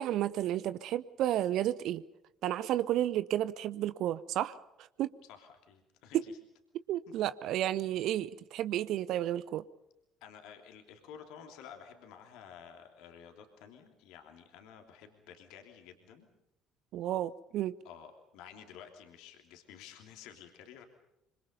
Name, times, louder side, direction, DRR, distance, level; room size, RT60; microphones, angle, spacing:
voice 1, 0.0-2.0 2.4-4.6 5.0-5.1 6.1-6.2 6.9-9.6 16.9-17.8, right 12 dB, 55° right, 16 dB, 0.8 m, -32 dB
voice 2, 5.2-6.4 10.2-16.3 17.8-20.8, left 8 dB, 60° left, 4 dB, 3.1 m, -52 dB
26.0 x 26.0 x 5.4 m, 0.85 s
figure-of-eight pair, 55°, 0 cm